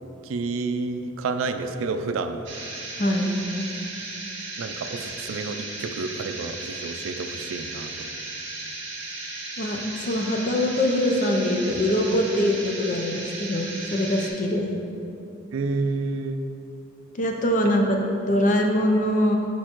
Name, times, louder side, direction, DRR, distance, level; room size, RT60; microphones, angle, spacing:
voice 1, 0.2-2.4 4.6-8.1 15.5-16.4, right 3 dB, 85° right, 8 dB, 0.4 m, -29 dB
sound 1, 2.4-14.3, right 2 dB, 60° right, 1.4 m, -35 dB
voice 2, 3.0-3.4 9.6-14.8 17.2-18.0 18.3-19.4, left 1 dB, 40° left, 2 dB, 0.6 m, -23 dB
6.4 x 5.3 x 3.0 m, 2.7 s
head